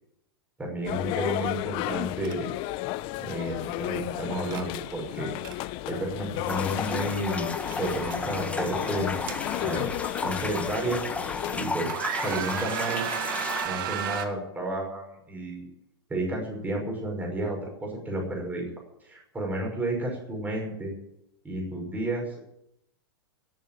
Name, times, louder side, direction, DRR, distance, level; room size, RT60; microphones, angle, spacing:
voice 1, 0.6-2.5 3.2-9.2 9.6-9.9 10.2-11.0 11.5-13.0 13.6-15.7 16.1-18.6 19.0-20.9 21.4-22.5, right 1 dB, 15° right, -1 dB, 5.8 m, -32 dB
sound 1, 0.8-11.7, left 17 dB, 40° left, 0.7 m, -33 dB
sound 2, 2.2-2.3 2.7-2.9 4.5-4.7 5.2-5.6 7.1-7.3 7.6-8.2 9.0-10.0 10.6-10.7 11.3-11.5 11.8-14.3, right 9 dB, 60° right, 2.0 m, -33 dB
sound 3, 6.5-13.7, left 3 dB, 10° left, 1.4 m, -34 dB
17.5 x 7.6 x 8.9 m, 0.80 s
hypercardioid pair, 115°, 13 cm